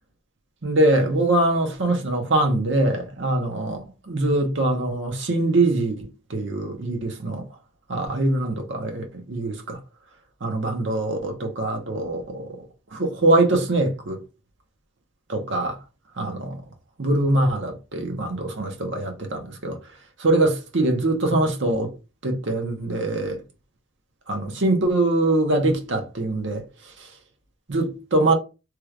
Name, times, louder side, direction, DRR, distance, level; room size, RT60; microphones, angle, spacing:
voice 1, 0.6-7.5 7.9-9.8 10.4-12.6 12.9-14.2 15.3-15.8 16.2-16.6 17.0-19.8 20.2-21.9 22.2-23.4 24.3-26.6 27.0-27.1 27.7-28.3, right 2 dB, 60° right, 0.9 m, -23 dB
3.1 x 2.4 x 3.2 m
head